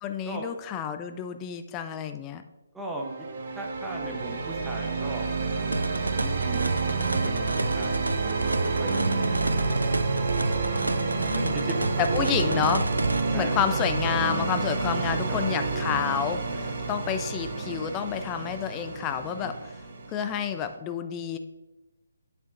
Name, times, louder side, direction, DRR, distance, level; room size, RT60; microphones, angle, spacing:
voice 1, 0.0-2.4 11.2-11.6 12.0-12.9 13.3-19.7 20.1-21.4, left 8 dB, 20° left, 9 dB, 0.4 m, -29 dB
voice 2, 2.7-3.1 3.6-5.3 6.2-10.0 11.3-12.0 13.3-13.6 15.3-15.4 19.4-19.5, right 1 dB, 5° right, -2 dB, 0.9 m, -38 dB
sound 1, 3.0-20.7, right 3 dB, 45° right, 0.8 m, -29 dB
sound 2, 5.7-13.2, right 2 dB, 80° right, 0.3 m, -31 dB
8.4 x 6.8 x 2.6 m, 1.1 s
figure-of-eight pair, 145°, 0 cm